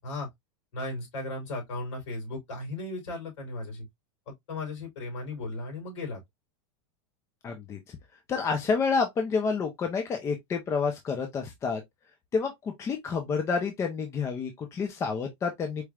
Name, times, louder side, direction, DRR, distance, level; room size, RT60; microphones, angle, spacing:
voice 1, 0.7-3.9 4.5-6.2, left 2 dB, 65° left, 3.3 m, -36 dB
voice 2, 7.4-8.0 8.3-11.8 12.3-15.8, left 5 dB, 20° left, 0.6 m, -29 dB
4.6 x 3.1 x 2.3 m
supercardioid pair, 155°, 16 cm